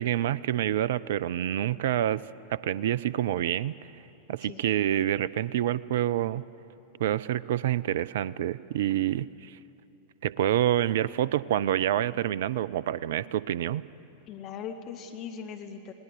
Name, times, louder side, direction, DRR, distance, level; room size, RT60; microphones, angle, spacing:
voice 1, 0.0-2.2 2.5-4.0 4.3-6.4 7.0-9.6 10.2-13.8, right 11 dB, 55° right, 20 dB, 0.4 m, -27 dB
voice 2, 14.3-15.9, left 7 dB, 35° left, 6 dB, 1.3 m, -39 dB
22.0 x 18.0 x 8.0 m, 2.9 s
figure-of-eight pair, 90°, 0 cm